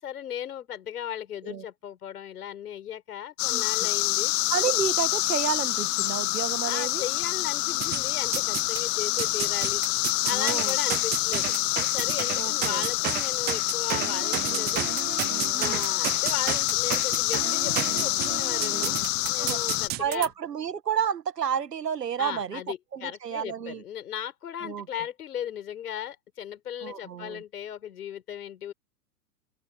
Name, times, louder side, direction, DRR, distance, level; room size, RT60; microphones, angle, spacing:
voice 1, 0.0-4.3 6.6-9.8 10.2-11.5 11.9-14.9 15.6-20.3 22.2-28.7, left 10 dB, 70° left, 5.9 m, -36 dB
sound 1, 3.4-19.9, left 22 dB, 45° left, 0.8 m, -27 dB
voice 2, 3.5-3.9 4.5-7.0 10.3-10.8 12.4-12.8 15.5-15.9 19.2-19.6 20.0-22.6 22.9-23.8 24.6-24.9 26.8-27.4, right 8 dB, 85° right, 2.0 m, -31 dB
sound 2, 7.8-8.8 9.2-20.3, right 16 dB, 20° right, 0.7 m, -32 dB
hypercardioid pair, 115°, 47 cm